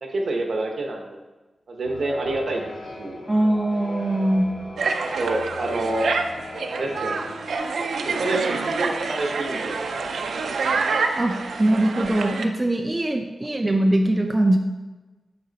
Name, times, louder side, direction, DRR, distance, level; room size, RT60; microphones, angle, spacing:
voice 1, 0.0-1.2 1.7-2.6 3.0-3.2 5.0-6.1 6.7-7.2 8.0-9.6, right 2 dB, 65° right, 2 dB, 1.0 m, -27 dB
sound 1, 1.8-7.6, left 1 dB, 75° left, 1.2 m, -38 dB
voice 2, 3.3-4.5 11.2-14.6, right 1 dB, 15° right, 3 dB, 0.5 m, -21 dB
sound 2, 4.8-12.5, right 4 dB, 80° right, 0.5 m, -27 dB
7.8 x 4.3 x 4.0 m, 1.2 s
wide cardioid pair, 105°, 0 cm